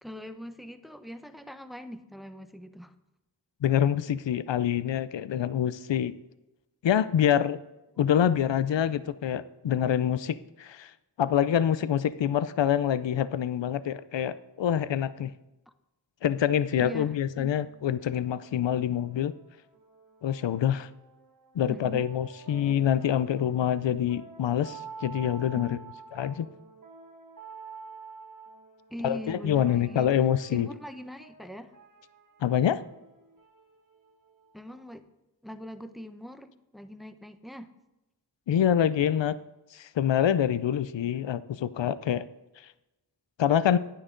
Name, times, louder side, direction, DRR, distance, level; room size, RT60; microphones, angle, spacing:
voice 1, 0.0-2.9 8.0-8.1 16.8-17.5 21.7-22.1 25.5-25.8 28.9-30.1 30.5-31.7 34.5-35.0 35.4-37.7, equal, ahead, 9 dB, 0.8 m, -42 dB
voice 2, 3.6-6.1 6.8-7.6 8.0-10.9 11.2-15.3 16.2-19.3 20.2-20.9 21.5-25.8 26.2-26.5 29.0-30.7 32.4-32.8 38.5-39.4 39.7-42.2 43.4-43.8, left 9 dB, 80° left, 15 dB, 0.5 m, -26 dB
sound 1, 17.5-35.0, right 5 dB, 45° right, 1.4 m, -50 dB
10.5 x 9.9 x 3.8 m, 0.99 s
wide cardioid pair, 60°, 43 cm